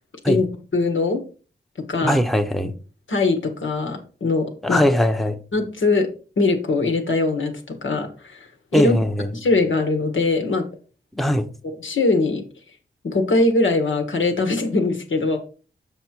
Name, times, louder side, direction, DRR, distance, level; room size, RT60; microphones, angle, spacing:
voice 1, 0.7-1.2 1.9-2.2 3.1-4.8 5.5-6.1 6.4-8.4 8.7-9.0 9.3-10.6 11.6-12.4 13.0-15.4, left 3 dB, 90° left, 1.6 m, -21 dB
voice 2, 2.0-2.7 4.6-5.4 8.7-9.3 11.2-11.5, equal, ahead, 0.7 m, -20 dB
7.0 x 5.5 x 4.5 m
wide cardioid pair, 85°, 19 cm